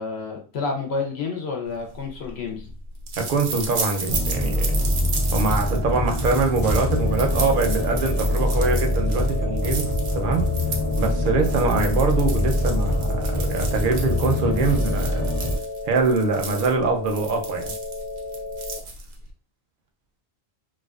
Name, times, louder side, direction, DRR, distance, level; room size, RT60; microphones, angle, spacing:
voice 1, 0.0-2.7, left 4 dB, 75° left, 2 dB, 0.8 m, -29 dB
sound 1, 1.9-19.3, right 3 dB, 85° right, 0.9 m, -34 dB
voice 2, 3.2-4.8 5.3-9.9 10.1-10.4 11.0-15.3 15.8-17.7, right 4 dB, 60° right, 3 dB, 0.6 m, -24 dB
sound 2, 4.1-15.6, left 1 dB, 40° left, 0.5 m, -24 dB
sound 3, 6.8-18.8, left 3 dB, 20° right, 0.5 m, -34 dB
2.4 x 2.3 x 2.3 m, 0.39 s
omnidirectional pair, 1.1 m